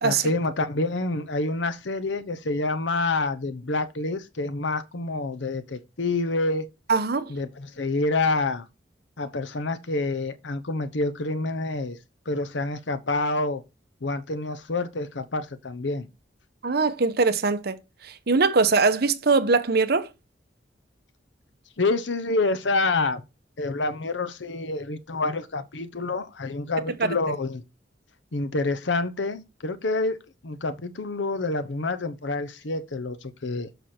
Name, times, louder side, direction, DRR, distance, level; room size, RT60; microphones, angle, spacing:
voice 1, 0.0-6.7 7.3-8.7 9.2-12.0 12.3-13.6 14.0-16.1 21.8-23.2 23.6-27.6 28.3-33.7, left 2 dB, 85° left, 0.9 m, -27 dB
voice 2, 6.9-7.3 16.6-17.8 18.0-20.1 27.0-27.1, right 4 dB, 60° right, 0.9 m, -22 dB
6.8 x 6.0 x 4.3 m
head